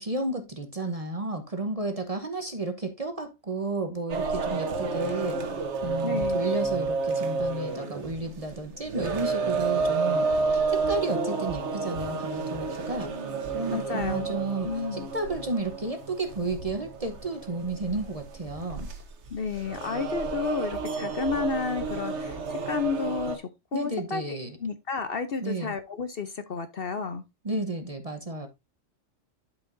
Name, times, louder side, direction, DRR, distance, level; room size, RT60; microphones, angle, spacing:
voice 1, 0.0-5.4 5.8-10.3 10.7-13.1 13.5-18.9 23.7-24.6 25.4-25.7 27.4-28.5, right 2 dB, 30° right, 0.9 m, -32 dB
sound 1, 4.1-23.4, right 4 dB, 60° right, 1.4 m, -30 dB
voice 2, 6.0-6.4 13.7-15.1 19.3-23.4 23.7-27.2, left 5 dB, 55° left, 0.8 m, -32 dB
12.0 x 4.9 x 2.5 m
omnidirectional pair, 1.4 m